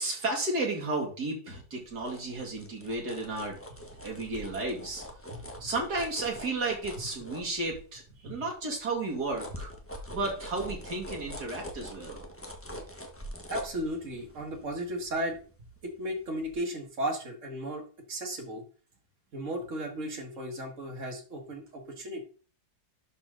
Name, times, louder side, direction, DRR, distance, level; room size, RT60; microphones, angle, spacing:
voice 1, 0.0-3.6 4.0-5.0 5.6-9.7 10.1-12.2, right 2 dB, 60° right, -1 dB, 2.9 m, -33 dB
sound 1, 1.8-8.1 8.5-16.1 16.4-16.6, equal, 10° left, 0.9 m, -44 dB
voice 2, 5.3-5.7 8.2-8.4 13.5-15.4 15.8-18.6 19.3-22.2, right 1 dB, 45° right, 3 dB, 1.9 m, -35 dB
11.5 x 4.4 x 3.8 m, 0.39 s
omnidirectional pair, 2.0 m